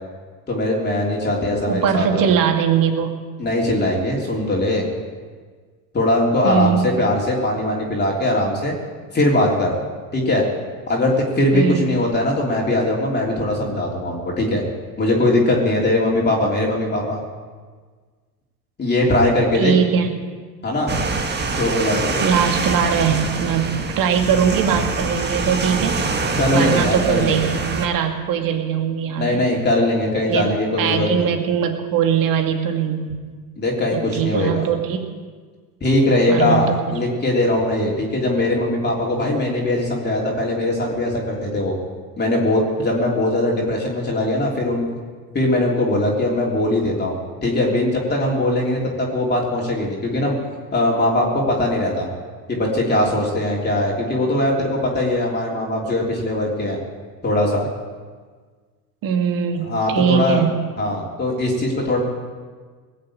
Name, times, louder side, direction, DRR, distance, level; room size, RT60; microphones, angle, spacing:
voice 1, 0.5-2.3 3.4-4.8 5.9-8.7 9.1-9.7 10.1-10.4 10.9-14.6 15.0-17.2 18.8-19.7 20.6-20.9 21.5-22.2 26.4-27.5 29.2-31.3 33.6-34.6 35.8-41.8 42.2-44.9 45.3-50.4 50.7-52.1 52.5-56.8 57.2-57.7 59.6-60.4 60.8-62.0, left 1 dB, 20° left, -2 dB, 3.3 m, -20 dB
voice 2, 1.7-3.1 6.4-6.8 11.5-11.8 19.5-20.1 22.2-26.0 26.5-29.4 30.3-30.5 30.8-33.2 33.9-35.0 36.3-37.0 59.0-60.5, right 7 dB, 45° right, 4 dB, 2.3 m, -21 dB
sound 1, 20.9-27.9, right 3 dB, 20° right, 1.6 m, -24 dB
19.5 x 7.3 x 8.8 m, 1.5 s
hypercardioid pair, 100°, 48 cm